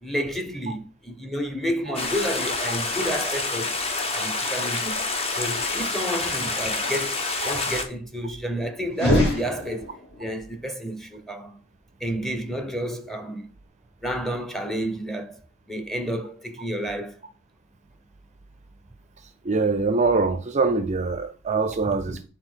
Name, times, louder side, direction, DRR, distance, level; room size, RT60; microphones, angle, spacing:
voice 1, 0.0-3.8 4.1-5.0 5.4-7.2 7.4-9.9 10.2-11.6 12.0-13.5 14.0-15.4 15.7-17.1 22.1-22.2, equal, ahead, 0.8 m, -30 dB
Stream, 1.9-7.8, left 3 dB, 30° left, 1.0 m, -27 dB
sound 1, 8.9-10.2, left 1 dB, 55° left, 3.9 m, -23 dB
voice 2, 19.4-22.3, right 4 dB, 35° right, 0.5 m, -23 dB
8.5 x 4.0 x 4.5 m
head